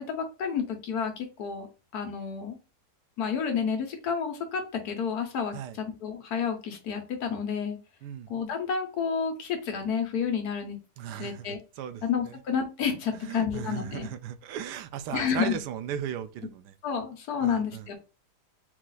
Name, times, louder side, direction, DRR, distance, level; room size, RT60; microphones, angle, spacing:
voice 1, 0.0-1.7 1.9-2.6 3.2-7.8 8.3-10.8 11.2-11.6 12.0-14.1 15.1-15.6 16.8-17.9, left 6 dB, 70° left, 1.4 m, -30 dB
voice 2, 11.0-12.3 13.2-16.7 17.4-17.9, right 10 dB, 90° right, 1.2 m, -37 dB
4.5 x 2.4 x 3.9 m
omnidirectional pair, 1.7 m